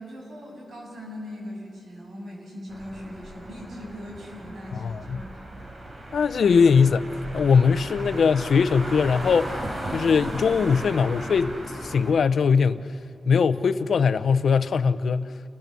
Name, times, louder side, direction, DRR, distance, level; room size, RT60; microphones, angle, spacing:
voice 1, 0.0-5.6, left 1 dB, 85° right, 7.9 m, -40 dB
sound 1, 2.7-12.1, right 1 dB, 50° right, 4.1 m, -36 dB
voice 2, 4.7-5.2 6.1-7.1 7.3-9.6 9.9-11.5 11.8-12.9 13.3-15.3, left 5 dB, 85° left, 0.7 m, -21 dB
29.5 x 22.0 x 7.0 m
wide cardioid pair, 160°, 0 cm